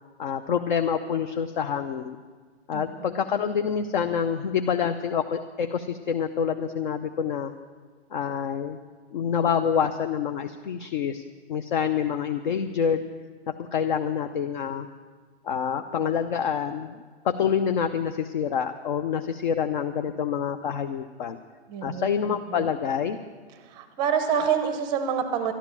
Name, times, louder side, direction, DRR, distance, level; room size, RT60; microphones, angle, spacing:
voice 1, 0.2-2.2 2.7-7.5 8.1-8.8 9.1-11.2 11.5-13.0 13.6-14.9 15.4-17.0 17.2-21.4 21.8-23.2, left 7 dB, 45° left, 8 dB, 0.6 m, -27 dB
voice 2, 21.7-22.1 22.5-22.7 23.6-25.5, right 7 dB, 15° right, 8 dB, 0.6 m, -27 dB
12.5 x 11.5 x 7.2 m, 1.5 s
hypercardioid pair, 150°, 33 cm